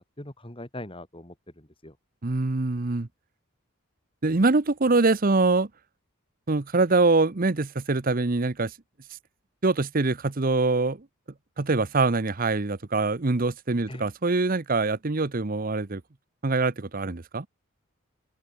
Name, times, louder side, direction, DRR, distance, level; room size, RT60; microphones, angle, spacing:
voice 1, 0.2-2.0 13.9-14.1, left 1 dB, 25° left, 3.6 m, -41 dB
voice 2, 2.2-3.1 4.2-5.7 6.5-8.7 9.6-11.1 11.6-16.0 16.4-17.5, right 3 dB, 40° right, 0.8 m, -24 dB
open air
head